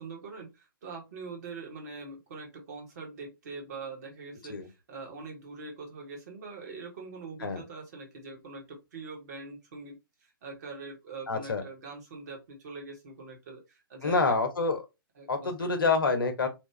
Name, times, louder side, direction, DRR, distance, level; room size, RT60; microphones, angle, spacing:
voice 1, 0.0-14.4 15.1-15.7, right 4 dB, 45° right, 1.4 m, -43 dB
voice 2, 11.3-11.6 14.0-14.8 15.3-16.5, left 4 dB, 65° left, 0.9 m, -27 dB
3.2 x 2.4 x 3.1 m
figure-of-eight pair, 130°, 12 cm